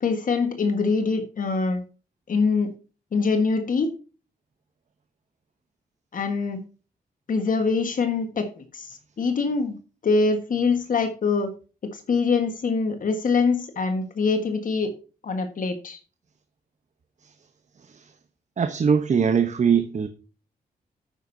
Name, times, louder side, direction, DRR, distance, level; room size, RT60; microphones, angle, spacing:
voice 1, 0.0-1.8 2.3-2.7 3.1-3.9 6.1-6.6 7.3-9.8 10.0-11.5 11.8-14.9 15.2-16.0, left 4 dB, 60° left, 1.5 m, -24 dB
voice 2, 18.6-20.1, right 6 dB, 50° right, 0.9 m, -21 dB
11.0 x 9.1 x 2.7 m
cardioid pair, 95°, 16 cm